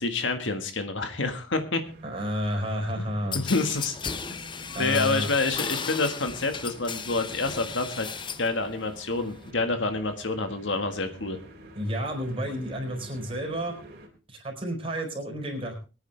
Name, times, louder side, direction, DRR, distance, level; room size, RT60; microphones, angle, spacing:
voice 1, 0.0-1.8 3.0-3.1 3.3-3.9 4.8-8.1 8.4-11.4, left 3 dB, 70° left, 7 dB, 1.7 m, -28 dB
sound 1, 1.8-14.1, right 1 dB, 50° right, 3.4 m, -49 dB
voice 2, 2.0-3.4 4.7-5.3 11.7-13.7 14.3-15.7, equal, 30° right, 1 dB, 4.4 m, -31 dB
sound 2, 3.3-8.5 8.9-9.5, left 6 dB, 25° left, 0.6 m, -35 dB
22.5 x 9.6 x 3.4 m, 0.33 s
head